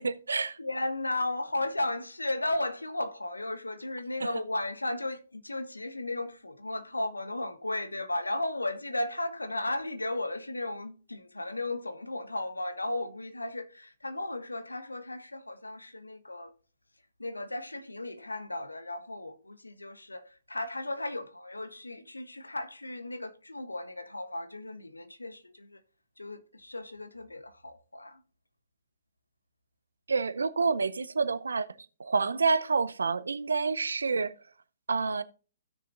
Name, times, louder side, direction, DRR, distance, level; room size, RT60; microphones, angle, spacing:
voice 1, 0.0-0.6 4.2-4.3 30.1-31.7 32.0-34.3 34.9-35.2, right 4 dB, 75° right, 0.7 m, -28 dB
voice 2, 0.6-16.5 17.2-25.8 26.2-28.2, left 2 dB, 90° left, 1.2 m, -35 dB
16.0 x 6.4 x 2.6 m
figure-of-eight pair, 125°, 0 cm